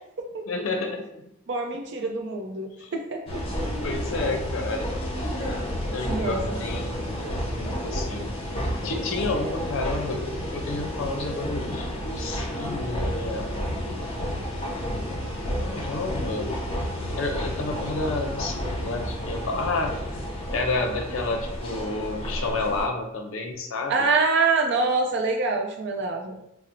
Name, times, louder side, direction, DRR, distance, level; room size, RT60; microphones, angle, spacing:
voice 1, 0.5-1.0 2.8-3.0 3.8-4.9 5.9-8.3 8.8-13.5 15.6-16.5 17.2-19.9 20.5-24.0, left 3 dB, 70° left, 3 dB, 0.5 m, -30 dB
voice 2, 1.5-3.4 6.1-6.5 23.9-26.4, right 3 dB, 55° right, 3 dB, 0.5 m, -25 dB
sound 1, 3.3-22.9, equal, 25° left, 0.6 m, -31 dB
4.2 x 2.0 x 2.6 m, 0.79 s
head